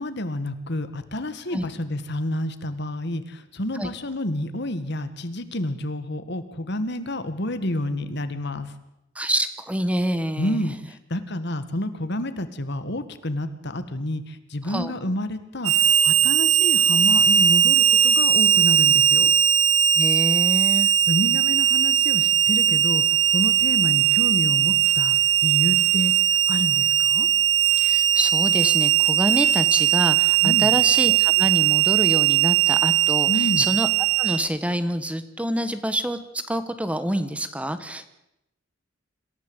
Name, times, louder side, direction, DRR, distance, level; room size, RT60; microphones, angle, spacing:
voice 1, 0.0-8.7 10.4-19.3 20.7-23.0 23.3-26.1 26.5-27.3 30.4-30.8 33.3-33.7, left 1 dB, 60° left, 11 dB, 1.8 m, -29 dB
voice 2, 9.1-10.6 14.6-14.9 19.9-20.9 27.8-33.9 34.2-36.2 36.5-38.1, right 1 dB, 5° right, 11 dB, 1.2 m, -26 dB
Harmonica, 15.6-34.4, right 10 dB, 80° right, 1.7 m, -19 dB
26.5 x 14.5 x 8.0 m, 0.86 s
head